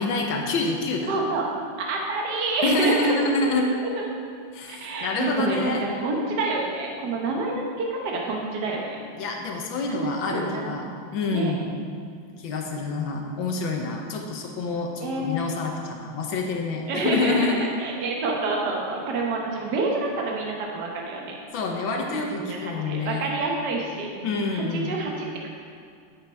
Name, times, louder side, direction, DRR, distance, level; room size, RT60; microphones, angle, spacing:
voice 1, 0.0-1.1 2.6-3.7 4.5-5.8 9.2-10.8 11.1-11.6 12.4-17.7 21.5-23.3 24.2-24.9, left 3 dB, 80° left, 2 dB, 1.7 m, -27 dB
voice 2, 1.1-1.4 1.9-3.6 3.8-4.1 4.7-9.0 9.8-11.0 11.3-12.0 15.0-15.4 16.9-21.4 22.3-25.5, right 3 dB, 60° right, -1 dB, 1.7 m, -28 dB
11.0 x 8.8 x 4.5 m, 2.3 s
omnidirectional pair, 2.1 m